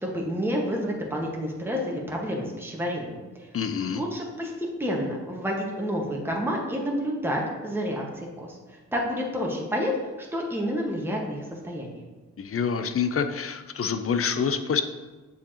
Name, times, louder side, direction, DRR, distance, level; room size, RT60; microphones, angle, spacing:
voice 1, 0.0-3.5 3.9-8.6 8.9-9.9 10.2-11.4 11.6-12.0, equal, 5° right, -1 dB, 1.5 m, -29 dB
voice 2, 3.5-4.0 12.4-14.8, left 6 dB, 45° left, 9 dB, 0.6 m, -26 dB
6.8 x 4.9 x 2.9 m, 1.2 s
hypercardioid pair, 40°, 33 cm